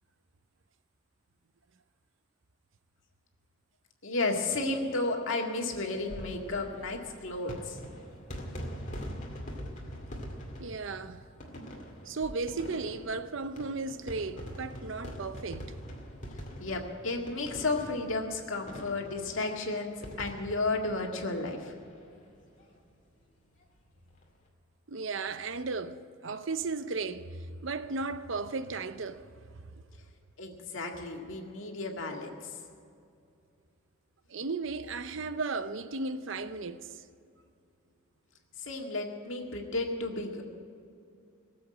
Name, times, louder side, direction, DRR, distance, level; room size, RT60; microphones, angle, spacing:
voice 1, 4.0-7.8 16.6-21.8 30.4-32.6 38.6-40.4, left 2 dB, 75° left, 2.0 m, -33 dB
sound 1, 6.0-22.0 22.3-22.4 22.6-22.7 24.0-24.2, equal, 35° left, 2.2 m, -43 dB
voice 2, 10.6-11.2 12.0-15.8 24.9-29.8 34.3-37.0, right 3 dB, 65° right, 0.7 m, -35 dB
18.5 x 7.7 x 8.9 m
head